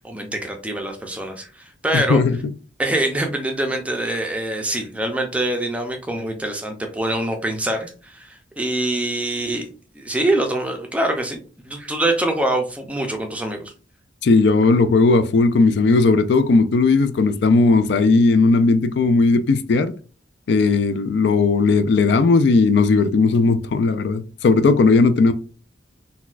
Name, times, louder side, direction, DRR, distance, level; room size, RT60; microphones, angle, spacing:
voice 1, 0.0-2.2 2.8-9.7 9.9-13.7, right 1 dB, 5° right, 0.4 m, -24 dB
voice 2, 1.9-2.4 14.2-19.9 20.5-25.3, left 3 dB, 65° left, 0.3 m, -16 dB
4.0 x 2.2 x 2.4 m
head